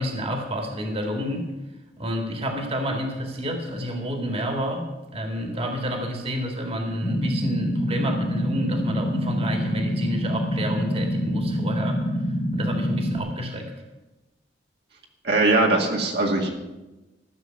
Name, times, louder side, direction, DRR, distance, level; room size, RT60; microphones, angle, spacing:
voice 1, 0.0-1.5 2.0-4.9 5.1-12.1 12.5-13.7, equal, 35° right, 3 dB, 2.0 m, -29 dB
sound 1, 7.0-13.2, equal, 30° left, 1.4 m, -26 dB
voice 2, 15.2-16.5, right 2 dB, 65° right, 0 dB, 2.1 m, -20 dB
14.5 x 7.1 x 9.1 m, 1.1 s
head